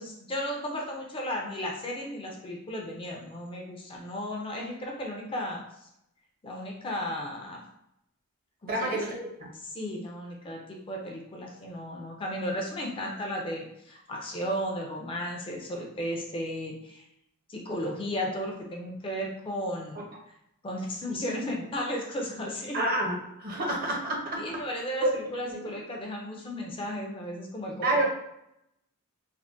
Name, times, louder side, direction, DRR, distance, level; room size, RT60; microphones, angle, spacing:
voice 1, 0.0-5.9 6.4-7.6 8.6-9.0 9.6-17.0 17.5-20.1 20.6-22.8 24.4-28.1, equal, 25° left, 0 dB, 0.4 m, -34 dB
voice 2, 8.7-9.5 22.7-24.6 25.0-25.1 25.5-25.7 27.8-28.1, right 1 dB, 45° right, -1 dB, 0.7 m, -29 dB
3.4 x 2.1 x 2.5 m, 0.78 s
head